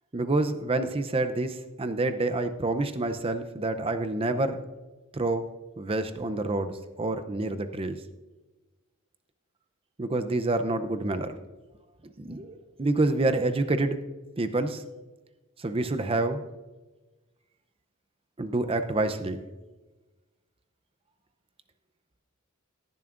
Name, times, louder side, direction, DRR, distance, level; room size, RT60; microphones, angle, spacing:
voice 1, 0.1-4.6 5.1-5.5 5.8-8.0 10.0-11.3 12.0-14.0 14.4-14.8 15.6-16.4 18.4-19.4, right 2 dB, 25° right, 9 dB, 0.6 m, -28 dB
16.5 x 11.0 x 2.5 m, 1.2 s
head